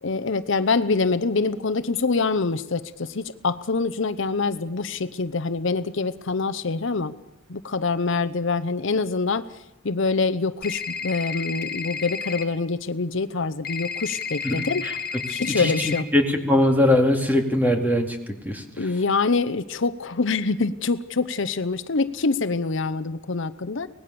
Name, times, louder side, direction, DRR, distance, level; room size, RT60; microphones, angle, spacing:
voice 1, 0.0-7.1 7.5-9.6 9.8-14.8 15.3-16.0 18.8-23.9, left 4 dB, 65° left, 12 dB, 0.8 m, -25 dB
sound 1, 10.6-12.4 13.7-16.0, left 6 dB, 50° left, 1.6 m, -31 dB
voice 2, 14.4-14.9 15.5-18.6, left 1 dB, 10° right, 4 dB, 2.5 m, -21 dB
24.5 x 19.0 x 6.9 m, 0.85 s
head